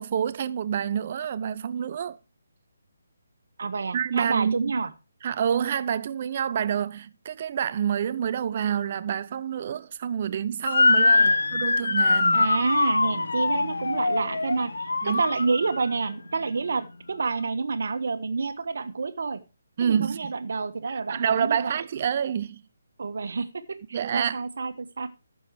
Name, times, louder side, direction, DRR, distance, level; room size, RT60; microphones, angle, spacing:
voice 1, 0.0-2.2 3.9-4.7 5.2-12.5 15.0-15.2 19.8-20.3 20.8-22.6 23.9-24.4, right 8 dB, 35° right, 0.5 m, -28 dB
voice 2, 3.6-4.9 11.1-11.7 12.3-19.4 19.8-21.8 23.0-23.5 23.9-25.1, right 4 dB, 50° right, 1.3 m, -29 dB
Motor vehicle (road) / Siren, 10.6-15.9, left 3 dB, 60° left, 1.1 m, -23 dB
14.0 x 7.0 x 4.7 m
figure-of-eight pair, 145°, 0 cm